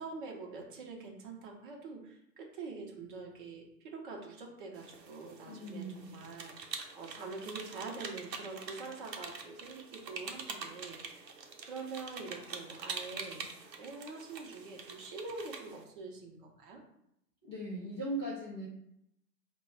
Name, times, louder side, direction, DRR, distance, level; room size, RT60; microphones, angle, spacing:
voice 1, 0.0-11.2 11.6-16.8, right 4 dB, 30° right, 0 dB, 0.7 m, -45 dB
sound 1, 4.7-15.8, right 4 dB, 90° right, 0.7 m, -45 dB
voice 2, 5.5-6.1 17.4-18.7, right 1 dB, 20° left, -11 dB, 0.3 m, -39 dB
3.7 x 2.2 x 4.4 m, 0.78 s
figure-of-eight pair, 125°, 49 cm